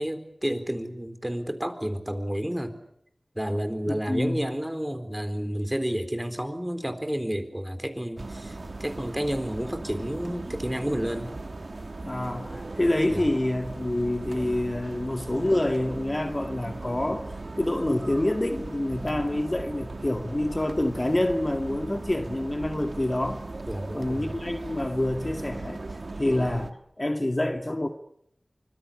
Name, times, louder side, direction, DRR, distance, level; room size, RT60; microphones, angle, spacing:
voice 1, 0.0-2.8 3.4-11.4 13.1-13.3 23.7-24.4, equal, 15° right, 9 dB, 4.0 m, -30 dB
voice 2, 3.9-4.4 12.0-23.4 23.9-27.9, left 1 dB, 35° left, 6 dB, 2.2 m, -27 dB
sound 1, 8.2-26.7, right 2 dB, 75° right, 1.8 m, -38 dB
25.0 x 21.0 x 8.6 m, 0.74 s
wide cardioid pair, 45°, 0 cm